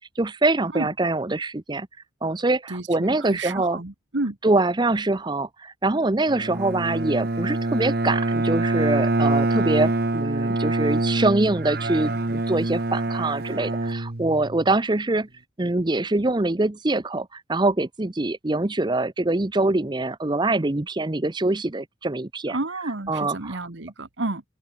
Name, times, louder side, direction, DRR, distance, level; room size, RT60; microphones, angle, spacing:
voice 1, 0.2-1.9 2.2-3.8 4.4-15.3 15.6-22.6 23.1-23.6, right 2 dB, 25° right, 0.7 m, -24 dB
voice 2, 2.7-4.4 22.5-24.4, right 2 dB, 70° right, 1.6 m, -31 dB
Bowed string instrument, 6.3-14.7, right 2 dB, 55° right, 1.3 m, -25 dB
open air
head